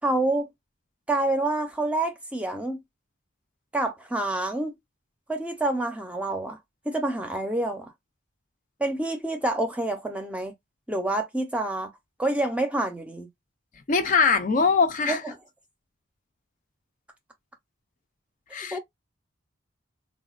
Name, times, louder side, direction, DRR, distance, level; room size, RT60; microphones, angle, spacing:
voice 1, 0.0-0.5 1.1-2.8 3.7-4.8 5.3-6.6 6.9-7.9 8.8-10.5 10.9-11.9 12.2-13.3 15.1-15.3 18.7-18.8, right 2 dB, 5° right, 0.6 m, -27 dB
voice 2, 13.9-15.2 18.5-18.8, left 5 dB, 40° left, 0.5 m, -22 dB
3.9 x 2.3 x 2.3 m
head